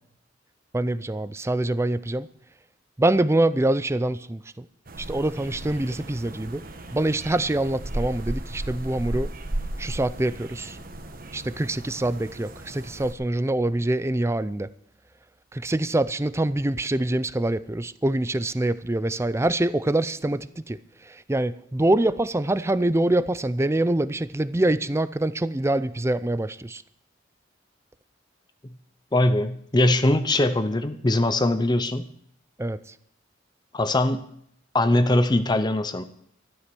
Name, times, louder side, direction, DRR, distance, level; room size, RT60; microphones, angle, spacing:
voice 1, 0.7-2.3 3.0-4.6 5.0-6.6 6.9-9.3 9.8-10.8 11.3-14.7 15.5-20.8 21.1-26.8 32.6-32.8, right 1 dB, 15° right, 16 dB, 0.5 m, -25 dB
sound 1, 4.9-13.1, right 1 dB, 45° right, 1.3 m, -35 dB
voice 2, 29.1-32.1 33.7-34.3 34.7-36.0, left 1 dB, 20° left, 11 dB, 0.7 m, -21 dB
13.0 x 11.5 x 6.1 m, 0.67 s
head